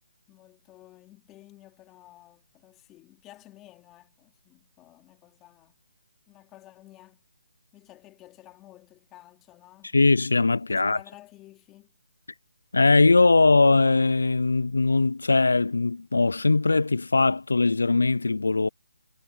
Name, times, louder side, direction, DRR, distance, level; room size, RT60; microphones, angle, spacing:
voice 1, 0.3-5.8 6.3-7.2 7.7-10.0 10.7-11.9, left 16 dB, 15° left, 3.2 m, -52 dB
voice 2, 9.9-11.0 12.7-18.7, left 3 dB, 80° left, 0.5 m, -20 dB
figure-of-eight pair, 155°, 0 cm